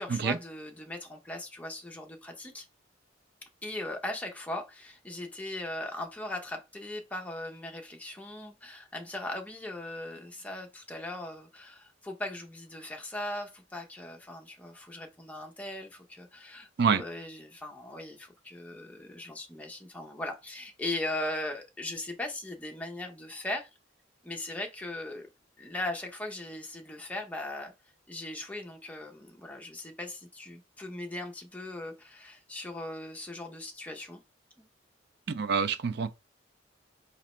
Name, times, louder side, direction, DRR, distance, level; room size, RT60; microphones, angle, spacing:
voice 1, 0.0-2.7 3.6-23.7 24.2-25.3 25.6-27.7 28.1-34.2 34.6-34.7, left 1 dB, 10° left, 0.6 m, -39 dB
voice 2, 35.3-36.1, right 6 dB, 55° right, 0.4 m, -26 dB
4.0 x 3.0 x 3.1 m
head